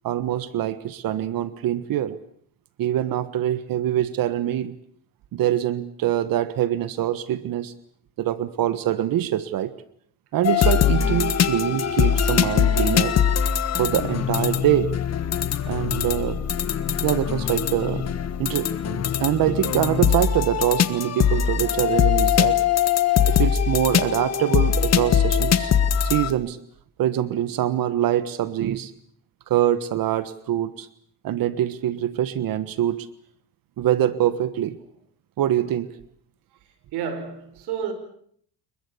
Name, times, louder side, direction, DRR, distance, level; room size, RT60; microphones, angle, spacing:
voice 1, 0.0-2.2 2.8-4.8 5.3-7.7 8.2-9.7 10.3-13.1 13.8-14.9 15.7-16.4 17.0-18.0 18.4-22.6 23.3-25.7 26.0-26.6 27.0-28.9 29.5-30.9 31.2-33.1 33.8-34.8 35.4-36.0, right 12 dB, 60° right, 1.4 m, -24 dB
sound 1, 10.4-26.3, left 8 dB, 40° left, 1.6 m, -22 dB
voice 2, 36.9-37.9, right 7 dB, 85° right, 5.2 m, -30 dB
29.0 x 22.5 x 7.1 m
cardioid pair, 135°, 38 cm